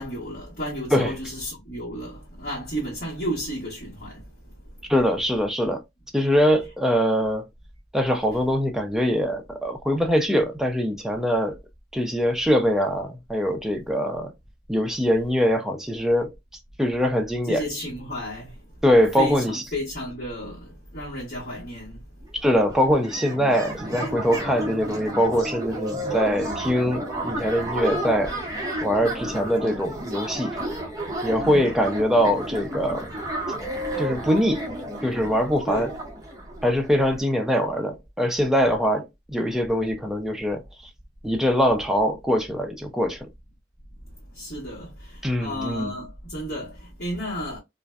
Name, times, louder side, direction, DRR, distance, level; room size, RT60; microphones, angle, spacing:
voice 1, 0.0-4.2 17.5-18.5 19.2-22.0 31.4-31.7 35.7-35.9 44.3-47.6, equal, 50° left, 1.3 m, -32 dB
voice 2, 4.9-5.8 6.1-7.4 7.9-11.6 11.9-14.3 14.7-16.3 16.8-17.6 18.8-19.6 22.3-28.3 28.8-30.6 31.2-33.1 34.0-34.7 35.0-35.9 36.6-40.6 41.2-43.3 45.2-45.9, equal, 5° right, 0.4 m, -23 dB
sound 1, 22.2-22.3 22.5-37.1, right 1 dB, 20° right, 0.8 m, -32 dB
2.5 x 2.1 x 2.3 m
head